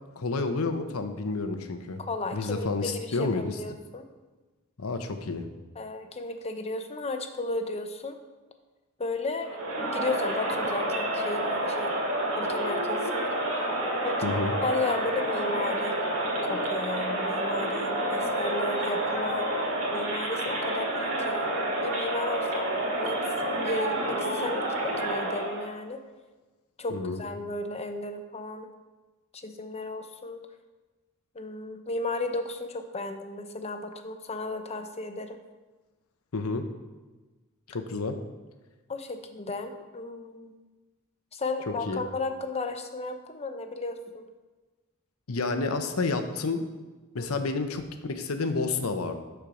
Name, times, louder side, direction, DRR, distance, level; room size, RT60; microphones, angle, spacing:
voice 1, 0.2-2.0 2.3-3.5 4.8-5.4 14.2-14.5 26.9-27.2 36.3-36.6 37.7-38.2 41.9-42.0 45.3-46.7 47.1-49.2, left 3 dB, 90° left, 7 dB, 0.8 m, -30 dB
voice 2, 2.0-4.0 5.8-8.2 9.0-12.0 12.4-13.7 14.0-16.0 16.4-19.5 19.9-21.5 21.8-23.2 23.6-26.0 26.8-28.7 29.3-30.4 31.3-35.4 38.9-40.5 41.3-44.3 47.2-47.3, left 2 dB, 30° left, 7 dB, 0.7 m, -34 dB
Crowd, 9.4-25.7, right 1 dB, 75° right, 2.2 m, -29 dB
12.5 x 4.6 x 5.0 m, 1.2 s
head